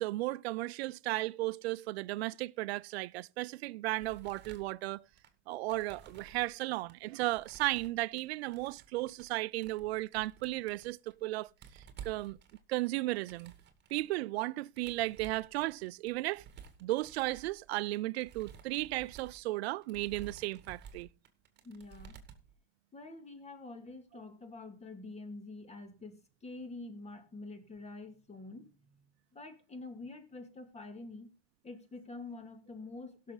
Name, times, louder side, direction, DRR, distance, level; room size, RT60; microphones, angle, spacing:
voice 1, 0.0-5.0 5.5-11.5 12.0-12.4 12.7-13.5 13.9-16.4 16.8-21.1, right 19 dB, 90° right, 0.5 m, -35 dB
sound 1, 4.0-5.3 5.7-6.5 6.9-8.2 8.5-9.3 9.6-11.2 11.5-14.0 14.7-22.5, right 7 dB, 35° right, 2.1 m, -53 dB
voice 2, 21.6-22.2 22.9-29.0 29.3-31.3 31.6-33.3, left 3 dB, 20° left, 2.4 m, -47 dB
17.0 x 6.5 x 4.0 m
supercardioid pair, 110°, 31 cm